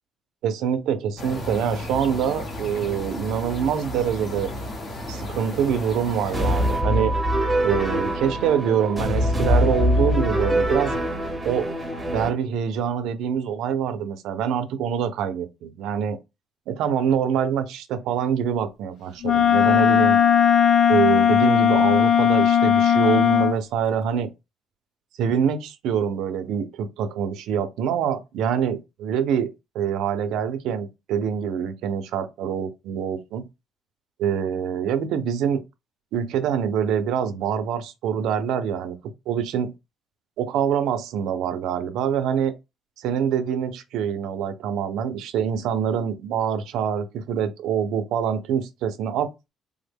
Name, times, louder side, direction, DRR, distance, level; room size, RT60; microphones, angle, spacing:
voice 1, 0.4-4.5 5.1-7.1 7.6-10.9 11.4-11.7 12.1-16.2 16.7-20.2 20.9-24.3 25.2-29.5 29.7-33.5 34.2-35.6 36.1-39.0 39.3-39.7 40.4-42.5 43.0-49.5, right 8 dB, 75° right, 0.5 m, -25 dB
sound 1, 1.2-6.8, left 1 dB, 25° left, 0.7 m, -33 dB
sound 2, 6.3-12.3, equal, 5° right, 0.8 m, -23 dB
Wind instrument woodwind instrument, 19.2-23.6, left 8 dB, 55° left, 0.4 m, -17 dB
3.4 x 2.1 x 3.4 m
cardioid pair, 170°, 0 cm